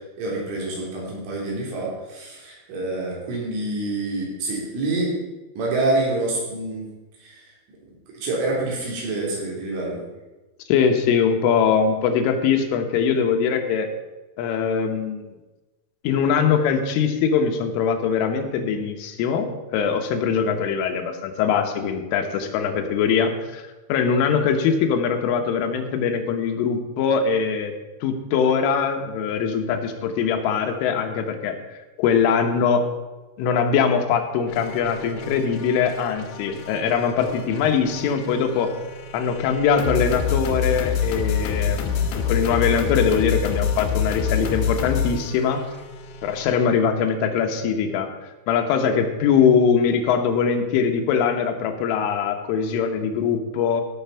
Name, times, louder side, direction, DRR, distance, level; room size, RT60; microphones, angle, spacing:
voice 1, 0.2-5.1 5.6-6.9 7.2-7.4 8.2-10.0, right 2 dB, 80° right, -3 dB, 5.9 m, -27 dB
voice 2, 10.7-13.9 14.4-15.3 16.0-23.6 23.9-27.7 28.0-31.6 32.0-32.9 33.4-38.8 39.1-45.6 46.2-48.1 48.5-53.8, left 6 dB, 90° left, 5 dB, 3.7 m, -22 dB
sound 1, 34.5-46.5, left 6 dB, 70° left, 2.7 m, -27 dB
16.0 x 7.1 x 5.7 m, 1.1 s
omnidirectional pair, 5.5 m